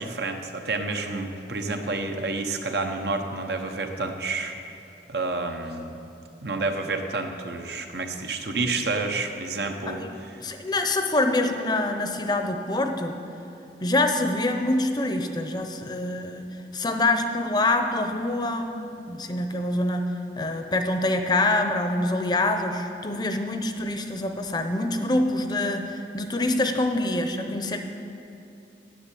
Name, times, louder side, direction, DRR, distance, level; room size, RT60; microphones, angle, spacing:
voice 1, 0.0-4.5 5.1-5.9 6.4-10.4, right 3 dB, 70° right, 5 dB, 0.9 m, -29 dB
voice 2, 10.4-13.2 13.8-16.5 16.7-20.1 20.4-27.8, left 2 dB, 25° left, 6 dB, 0.6 m, -25 dB
10.0 x 7.5 x 8.3 m, 2.7 s
head